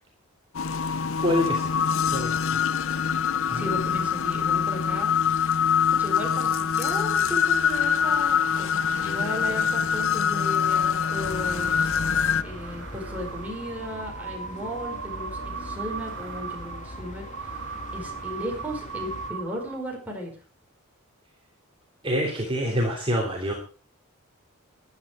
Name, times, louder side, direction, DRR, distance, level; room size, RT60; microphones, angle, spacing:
sound 1, 0.5-12.4, left 7 dB, 65° left, 0.7 m, -24 dB
voice 1, 1.2-1.6 2.1-2.5 3.5-3.7 22.0-23.5, equal, 25° right, -1 dB, 3.1 m, -26 dB
voice 2, 3.5-5.5 5.9-11.9 12.4-17.2 17.9-20.3, equal, 5° right, 0 dB, 4.9 m, -36 dB
sound 2, 10.4-20.1, right 5 dB, 60° right, 3.7 m, -39 dB
sound 3, 11.2-19.3, left 1 dB, 35° left, 2.7 m, -41 dB
14.5 x 11.5 x 5.0 m, 0.38 s
head